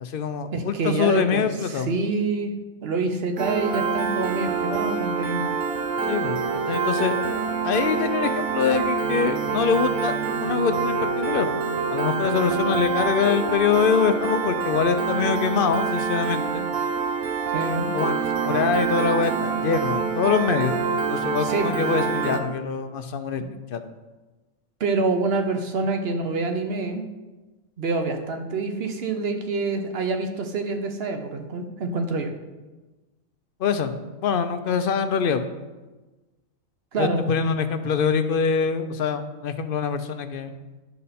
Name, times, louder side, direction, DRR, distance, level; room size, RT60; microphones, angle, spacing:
voice 1, 0.0-1.9 6.1-6.4 6.7-7.1 7.6-10.1 10.4-11.5 11.9-16.7 17.9-23.4 23.7-23.8 33.6-33.9 34.2-35.4 37.0-40.5, left 6 dB, 55° left, 9 dB, 0.7 m, -24 dB
voice 2, 0.5-2.5 2.8-5.5 17.5-17.9 21.4-21.7 24.8-27.0 27.8-32.3 36.9-37.3, right 3 dB, 50° right, 6 dB, 1.0 m, -26 dB
Piano, 3.4-22.4, right 5 dB, 90° right, 1.3 m, -26 dB
10.5 x 6.6 x 4.2 m, 1.2 s
omnidirectional pair, 1.4 m